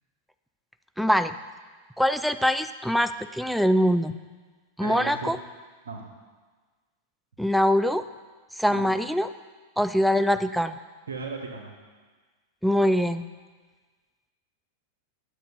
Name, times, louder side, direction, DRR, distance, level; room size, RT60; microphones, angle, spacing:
voice 1, 1.0-1.3 2.0-4.1 4.8-5.4 7.4-8.0 8.6-9.3 9.8-10.8 12.6-13.2, equal, ahead, 11 dB, 0.3 m, -23 dB
voice 2, 4.8-5.3 5.8-6.0 8.7-8.8 11.1-11.7, right 4 dB, 70° right, 2 dB, 1.5 m, -35 dB
9.8 x 6.9 x 5.4 m, 1.4 s
figure-of-eight pair, 90°, 0 cm